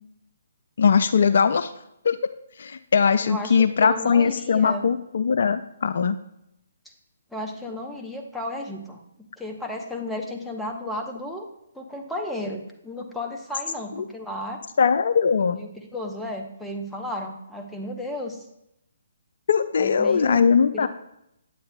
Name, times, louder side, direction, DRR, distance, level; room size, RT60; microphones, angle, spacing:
voice 1, 0.8-1.7 2.0-2.2 2.6-6.2 14.0-14.1 14.8-15.6 19.5-20.9, left 6 dB, 55° left, 11 dB, 0.3 m, -20 dB
voice 2, 3.2-4.9 7.3-9.0 9.4-11.5 11.7-14.6 15.5-18.5 19.8-20.4 20.7-20.9, left 1 dB, ahead, 1 dB, 0.8 m, -33 dB
8.9 x 8.5 x 2.2 m, 0.81 s
figure-of-eight pair, 135°, 0 cm